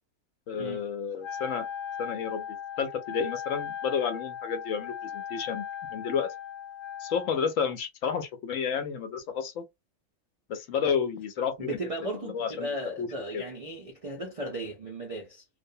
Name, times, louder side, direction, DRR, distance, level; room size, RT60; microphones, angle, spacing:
voice 1, 0.5-1.7 2.0-2.4 2.8-6.3 7.0-9.6 10.5-11.8 12.2-12.7 13.0-13.1 13.3-13.4, left 6 dB, 70° left, 0.9 m, -31 dB
Wind instrument woodwind instrument, 1.2-7.4, left 8 dB, 90° left, 0.4 m, -38 dB
voice 2, 11.6-15.4, right 1 dB, 70° right, 0.3 m, -36 dB
2.4 x 2.1 x 2.6 m
omnidirectional pair, 1.5 m